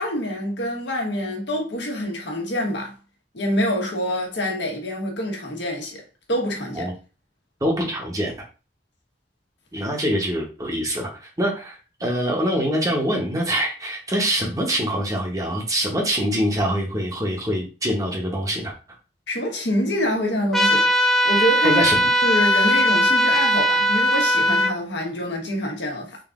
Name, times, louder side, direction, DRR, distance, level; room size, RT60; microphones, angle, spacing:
voice 1, 0.0-2.9 3.3-6.0 6.3-6.9 19.3-20.9 21.2-21.8 22.2-26.2, equal, 90° left, 1.3 m, -26 dB
voice 2, 7.6-8.3 9.7-18.7 21.6-22.0, equal, 20° right, 0.9 m, -24 dB
sound 1, 20.5-24.7, equal, ahead, 0.4 m, -19 dB
3.9 x 2.6 x 3.6 m
head